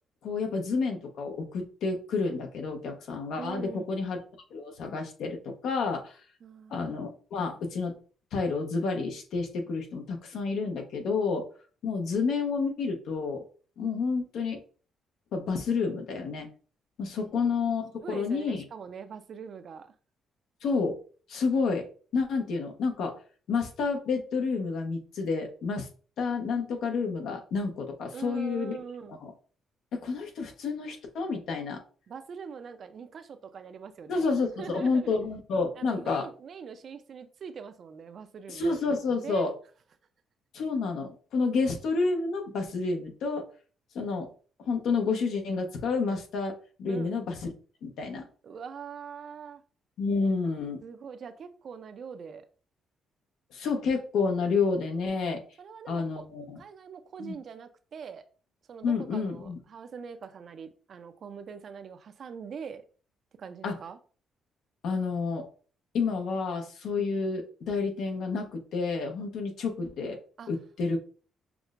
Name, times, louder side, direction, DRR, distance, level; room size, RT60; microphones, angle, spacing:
voice 1, 0.2-4.2 4.5-6.2 6.7-8.0 8.3-11.5 11.8-13.4 13.8-14.6 15.3-16.5 17.0-18.6 20.6-21.0 21.3-21.8 22.1-23.2 23.5-25.9 26.2-28.8 29.2-29.3 29.9-31.8 34.1-36.3 38.5-39.5 40.5-43.5 43.9-44.3 44.6-47.5 47.8-48.2 50.0-50.8 53.5-55.4 55.9-56.6 57.2-57.4 58.8-59.6 63.6-63.7 64.8-65.5 65.9-70.2 70.5-71.0, left 4 dB, 75° left, 0.8 m, -29 dB
voice 2, 3.4-3.9 6.4-7.0 17.2-17.3 18.0-19.9 28.1-29.2 32.1-34.3 34.6-35.2 35.7-38.7 39.2-39.5 46.9-47.2 48.4-49.6 50.8-52.4 55.6-56.3 56.6-58.2 58.7-62.8 63.4-64.0 70.4-70.5, right 6 dB, 55° right, 0.4 m, -43 dB
5.9 x 2.1 x 2.4 m
cardioid pair, 90°, 0 cm